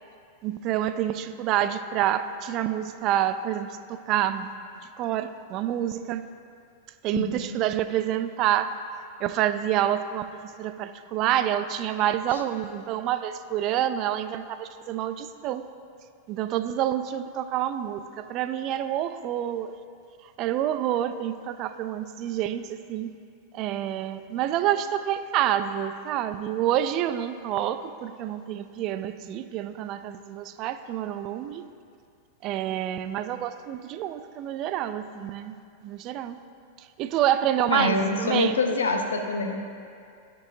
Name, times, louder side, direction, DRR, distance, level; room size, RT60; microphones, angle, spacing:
voice 1, 0.4-4.5 5.0-6.3 7.0-8.7 9.2-15.7 16.3-19.7 20.4-23.1 23.5-31.7 32.4-36.4 36.8-38.6, right 11 dB, 45° right, 11 dB, 0.3 m, -28 dB
voice 2, 7.1-7.6 37.7-39.6, left 3 dB, 80° left, 4 dB, 0.7 m, -26 dB
13.0 x 4.6 x 2.6 m, 2.3 s
hypercardioid pair, 100°, 0 cm